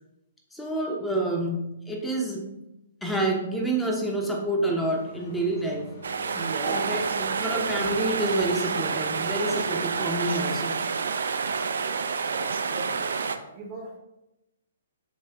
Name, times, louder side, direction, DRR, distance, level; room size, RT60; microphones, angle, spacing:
voice 1, 0.5-1.6 1.9-2.5 3.0-5.9 6.6-10.8, right 1 dB, 5° left, 1 dB, 0.8 m, -28 dB
sound 1, 4.9-10.2, left 2 dB, 55° left, 0.9 m, -45 dB
sound 2, 6.0-13.4, right 5 dB, 70° right, 0.3 m, -28 dB
voice 2, 6.3-6.9 7.5-7.8 12.2-14.0, right 3 dB, 30° right, 1 dB, 0.7 m, -37 dB
7.1 x 2.5 x 2.3 m, 0.91 s
figure-of-eight pair, 125°, 0 cm